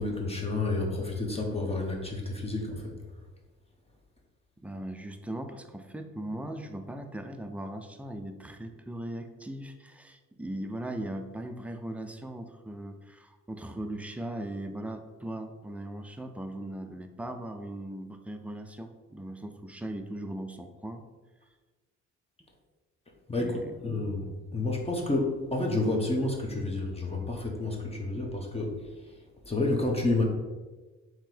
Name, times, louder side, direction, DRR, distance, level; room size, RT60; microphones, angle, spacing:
voice 1, 0.0-2.9 23.3-24.3 24.5-28.8 29.5-30.2, left 2 dB, 20° left, 1 dB, 0.8 m, -30 dB
voice 2, 4.6-21.0 23.4-23.7, right 1 dB, 5° right, 6 dB, 0.4 m, -39 dB
3.7 x 2.9 x 4.5 m, 1.3 s
cardioid pair, 90°, 30 cm